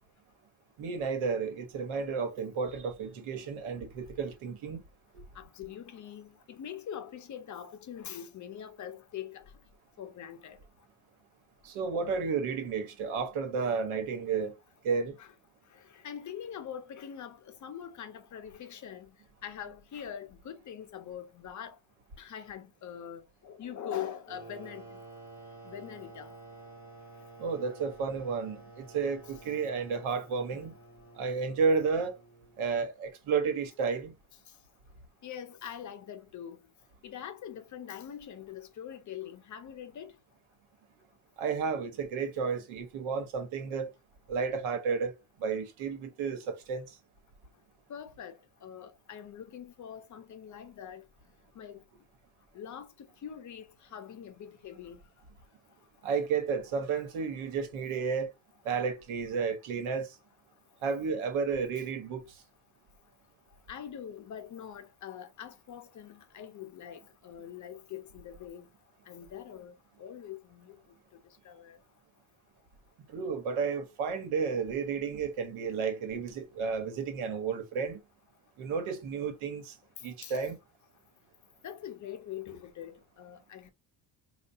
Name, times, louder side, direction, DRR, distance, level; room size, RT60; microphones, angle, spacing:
voice 1, 0.8-4.8 11.6-14.5 14.8-15.2 27.4-30.7 31.1-32.1 32.6-34.1 41.4-43.9 44.3-45.1 45.4-46.9 56.0-58.3 58.6-60.2 60.8-62.2 73.1-78.0 78.6-79.8 80.0-80.6, right 5 dB, 85° right, 1.2 m, -32 dB
voice 2, 5.4-9.4 10.0-10.6 13.6-13.7 15.2-15.3 16.0-19.1 19.4-21.8 22.2-25.0 25.7-26.3 30.5-30.7 35.2-36.6 37.0-40.1 47.9-51.0 51.6-51.8 52.5-52.9 53.2-53.6 53.9-55.0 63.7-68.7 69.1-69.7 70.0-70.7 71.4-71.8 80.2-80.4 81.6-83.7, left 9 dB, 40° left, 0.5 m, -43 dB
sound 1, 24.3-32.7, right 2 dB, 5° right, 1.8 m, -51 dB
4.5 x 2.4 x 2.7 m
cardioid pair, 145°, 48 cm